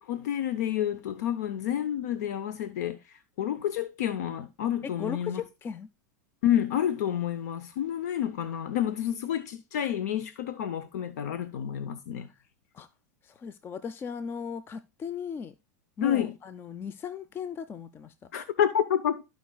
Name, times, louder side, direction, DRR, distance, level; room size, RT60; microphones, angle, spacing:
voice 1, 0.0-5.4 6.4-12.3 16.0-16.3 18.3-19.2, left 10 dB, 70° left, 0.7 m, -29 dB
voice 2, 4.8-5.9 12.2-12.3 12.7-12.9 13.2-15.5 16.0-18.1, left 6 dB, 25° left, 0.5 m, -37 dB
14.0 x 5.1 x 2.3 m
hypercardioid pair, 105°, 9 cm